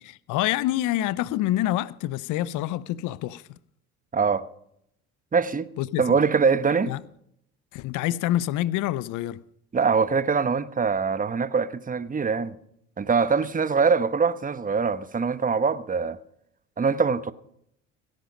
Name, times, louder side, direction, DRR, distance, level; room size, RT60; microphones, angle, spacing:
voice 1, 0.0-3.4 5.8-6.0 6.8-7.0 7.7-9.4, left 14 dB, 60° left, 0.6 m, -27 dB
voice 2, 4.1-4.4 5.3-5.7 6.0-6.9 9.7-12.5 13.0-16.2 16.8-17.3, right 5 dB, 25° right, 1.0 m, -23 dB
17.5 x 10.5 x 5.2 m
hypercardioid pair, 65°, 35 cm